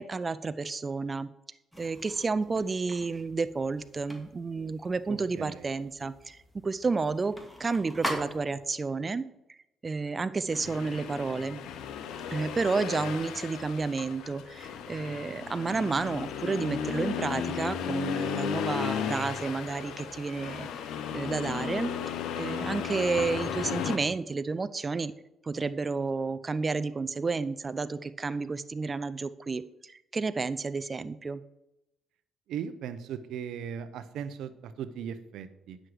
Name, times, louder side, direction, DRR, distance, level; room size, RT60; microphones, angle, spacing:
voice 1, 0.0-1.3 1.8-9.6 9.8-11.6 12.3-20.7 21.1-21.9 22.4-31.4, right 4 dB, 35° right, 14 dB, 0.5 m, -31 dB
sound 1, 1.7-8.8, equal, 5° left, 2.0 m, -42 dB
voice 2, 5.1-5.6 32.5-35.8, right 8 dB, 80° right, 13 dB, 0.7 m, -38 dB
Accelerating revving vroom, 10.5-24.0, left 8 dB, 80° left, 0.8 m, -35 dB
9.4 x 6.4 x 4.9 m, 0.87 s
supercardioid pair, 70°, 0 cm